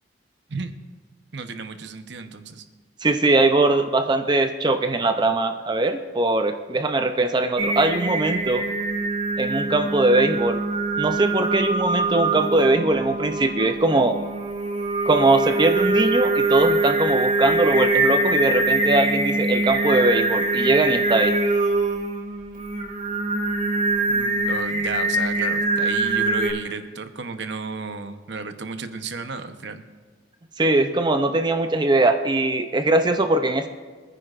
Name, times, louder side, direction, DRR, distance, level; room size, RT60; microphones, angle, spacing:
voice 1, 1.3-2.6 24.1-29.8, right 4 dB, 65° right, 8 dB, 0.9 m, -33 dB
voice 2, 3.0-8.6 9.4-10.6 11.0-14.2 15.1-21.3 30.6-33.7, right 2 dB, 25° right, 7 dB, 0.5 m, -21 dB
Singing, 7.6-26.5, right 2 dB, 45° right, 2.2 m, -23 dB
24.5 x 9.9 x 2.5 m, 1.4 s
head